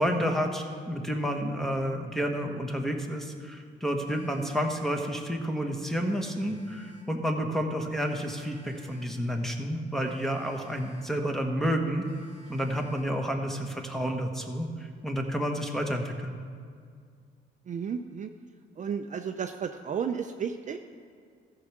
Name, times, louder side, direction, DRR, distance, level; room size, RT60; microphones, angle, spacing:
voice 1, 0.0-12.0 12.5-16.4, equal, ahead, 2 dB, 1.2 m, -30 dB
Telephone, 4.0-5.2 6.0-7.2 8.0-9.2 10.0-11.2 12.0-13.2, left 1 dB, 30° left, 2.7 m, -52 dB
voice 2, 17.7-18.3 18.8-20.8, right 7 dB, 40° right, 6 dB, 0.5 m, -33 dB
14.0 x 4.8 x 6.5 m, 2.2 s
cardioid pair, 90°, 20 cm